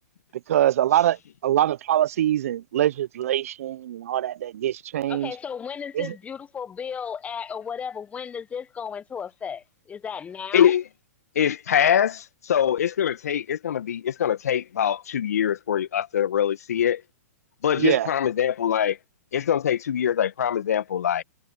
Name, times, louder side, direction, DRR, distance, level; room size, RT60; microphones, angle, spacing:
voice 1, 0.5-1.2 1.4-5.3 5.9-6.1 17.8-18.1, right 12 dB, 60° right, 0.9 m, -23 dB
voice 2, 5.1-10.8, left 7 dB, 15° left, 1.2 m, -34 dB
voice 3, 11.3-17.0 17.6-19.0 19.3-21.2, left 9 dB, 70° left, 1.6 m, -23 dB
hypercardioid pair, 120°, 9 cm